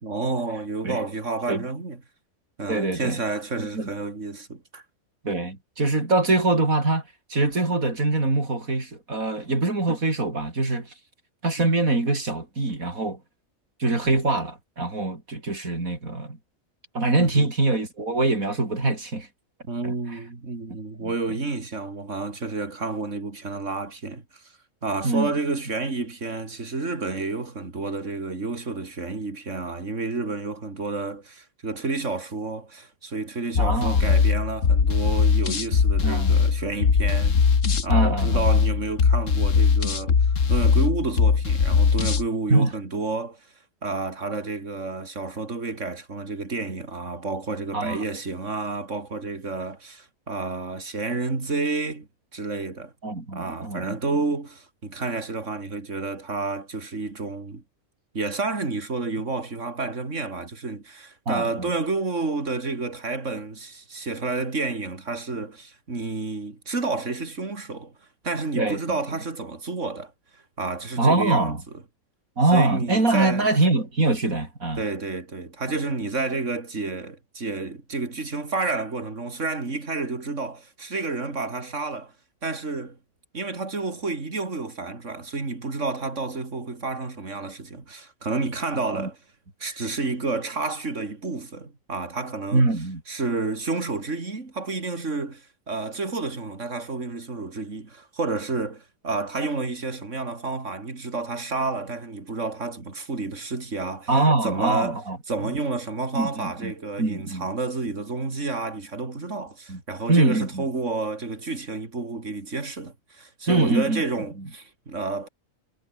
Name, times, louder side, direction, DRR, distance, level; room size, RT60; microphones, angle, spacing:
voice 1, 0.0-2.0 2.6-4.8 17.2-17.5 19.7-24.4 24.8-37.4 37.8-43.4 43.8-52.9 53.3-57.6 58.1-67.9 68.2-70.1 70.6-71.5 72.5-73.5 74.8-82.1 82.4-83.0 83.3-89.2 89.6-92.6 93.1-104.1 104.4-105.0 105.3-115.3, right 3 dB, 60° right, 3.7 m, -30 dB
voice 2, 2.7-3.2 3.6-3.9 5.2-7.0 7.3-10.9 11.4-13.2 13.8-16.4 16.9-19.3 19.8-20.2 21.0-21.1 25.0-25.3 33.6-34.2 36.0-36.4 37.9-38.5 42.5-42.7 47.7-48.0 53.0-54.0 61.3-61.7 68.6-69.0 71.0-71.6 72.4-74.8 88.9-89.1 92.5-93.0 104.1-105.6 106.1-106.7 107.0-107.5 109.7-109.8 110.1-110.6 113.5-114.0, right 2 dB, 80° right, 5.2 m, -23 dB
sound 1, 33.5-42.3, left 5 dB, 65° left, 2.1 m, -20 dB
omnidirectional pair, 1.4 m